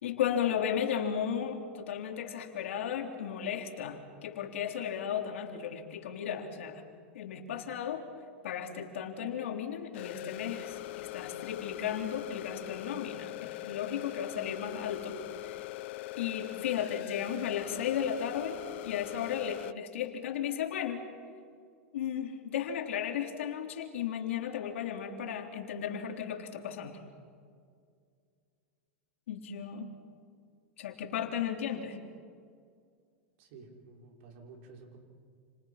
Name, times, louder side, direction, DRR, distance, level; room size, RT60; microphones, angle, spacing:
voice 1, 0.0-6.8 7.1-8.0 8.4-15.7 16.2-18.6 18.8-21.0 21.9-27.0 29.3-29.9 30.8-32.0, left 8 dB, 85° left, 3 dB, 3.6 m, -35 dB
sound 1, 9.9-19.7, left 16 dB, 65° left, 0.6 m, -41 dB
voice 2, 33.4-35.0, right 4 dB, 60° right, 0 dB, 6.2 m, -52 dB
30.0 x 28.5 x 6.0 m, 2.2 s
supercardioid pair, 130°, 7 cm